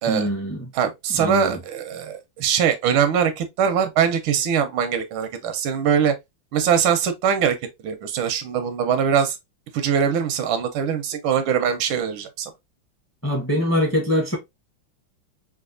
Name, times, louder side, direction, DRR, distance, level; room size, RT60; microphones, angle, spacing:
voice 1, 0.1-0.7 1.1-1.6 13.2-14.4, equal, 10° left, 0.6 m, -23 dB
voice 2, 0.7-6.1 6.5-7.6 7.8-9.4 9.7-12.5, right 7 dB, 85° right, 1.5 m, -22 dB
5.0 x 2.4 x 2.4 m
omnidirectional pair, 2.2 m